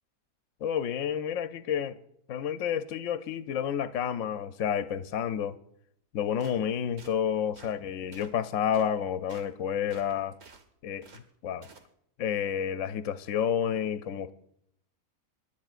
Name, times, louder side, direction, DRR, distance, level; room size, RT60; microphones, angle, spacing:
voice 1, 0.6-1.9 2.3-5.6 6.1-10.3 10.8-11.0 11.4-11.7 12.2-14.3, left 8 dB, 65° left, 0.9 m, -30 dB
sound 1, 6.4-6.6 7.0-7.1 7.6-7.8 8.1-8.4 8.7-8.9 9.3-9.5 9.9-10.6 11.0-11.2 11.6-11.9, right 4 dB, 50° right, 1.3 m, -52 dB
26.0 x 11.5 x 2.4 m
omnidirectional pair, 1.6 m